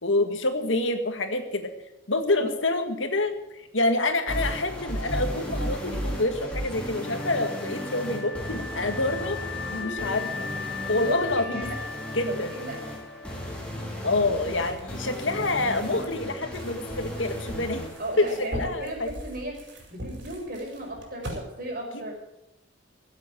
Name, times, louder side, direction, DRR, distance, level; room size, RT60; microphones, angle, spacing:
voice 1, 0.0-1.7 2.1-9.4 9.7-10.5 10.9-11.6 12.1-12.5 14.0-17.8 18.2-19.1 21.9-22.1, left 2 dB, 90° left, 7 dB, 2.0 m, -27 dB
sound 1, 4.3-18.3, equal, 5° left, 3.7 m, -35 dB
Wind instrument woodwind instrument, 7.0-14.0, left 5 dB, 70° left, 1.4 m, -38 dB
voice 2, 11.0-11.8 12.3-12.8 18.0-19.5 19.9-22.1, right 1 dB, 50° right, 0 dB, 5.4 m, -35 dB
sound 2, 14.4-21.4, equal, 65° right, 4.8 m, -41 dB
16.0 x 8.0 x 9.2 m, 0.89 s
head